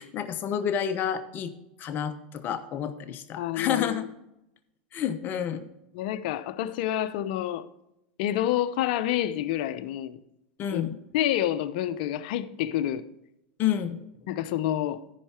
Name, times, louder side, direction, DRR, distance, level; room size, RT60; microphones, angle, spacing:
voice 1, 0.0-1.5 1.8-4.1 4.9-5.7 10.6-11.0 13.6-14.0, left 9 dB, 40° left, 1.0 m, -29 dB
voice 2, 3.4-4.1 5.9-7.7 8.2-10.2 10.7-10.8 11.1-13.1 14.3-15.0, left 12 dB, 65° left, 0.7 m, -28 dB
13.5 x 5.8 x 4.4 m
hypercardioid pair, 110°, 5 cm